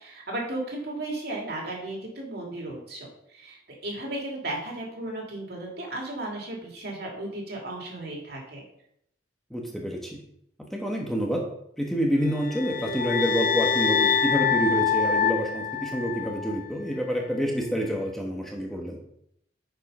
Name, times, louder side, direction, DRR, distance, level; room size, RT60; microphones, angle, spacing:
voice 1, 0.0-8.6, right 1 dB, 55° right, -1 dB, 2.6 m, -35 dB
voice 2, 9.5-10.2 10.6-11.5 11.8-19.1, equal, ahead, -1 dB, 1.2 m, -28 dB
sound 1, 12.3-16.6, left 7 dB, 45° left, 0.4 m, -25 dB
9.0 x 5.5 x 5.4 m, 0.74 s
head